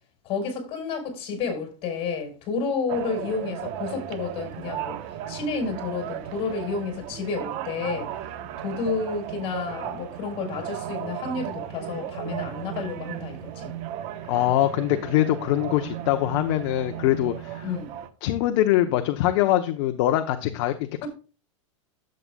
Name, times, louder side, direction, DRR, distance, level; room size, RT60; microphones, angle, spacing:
voice 1, 0.2-5.0 5.3-8.1 8.6-13.7 17.6-17.9 21.0-21.1, left 4 dB, 35° left, 4.7 m, -30 dB
sound 1, 2.9-18.1, right 10 dB, 45° right, 1.1 m, -35 dB
voice 2, 14.3-17.7 18.2-21.1, left 14 dB, 55° left, 0.9 m, -23 dB
12.0 x 7.8 x 2.3 m
supercardioid pair, 140°, 16 cm